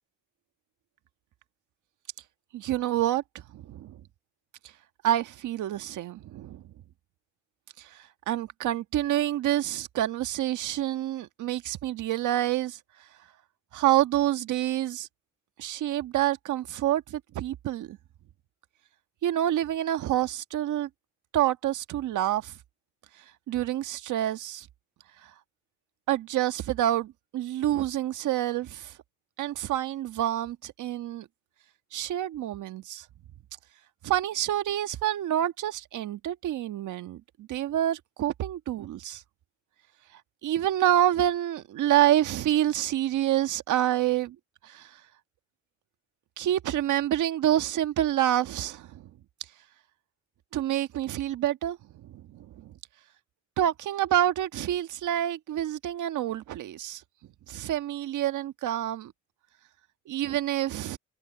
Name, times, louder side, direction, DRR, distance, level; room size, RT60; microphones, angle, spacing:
voice 1, 2.5-4.0 5.0-6.6 7.8-12.8 13.7-15.1 15.6-18.0 19.2-20.9 21.3-22.5 23.5-24.7 25.2-25.3 26.1-28.9 29.4-31.3 31.9-33.0 34.0-39.2 40.4-44.3 44.6-45.0 46.4-49.0 50.5-52.7 53.6-57.0 57.5-59.1 60.1-61.0, right 12 dB, 80° right, 1.5 m, -27 dB
cardioid pair, 90°, 30 cm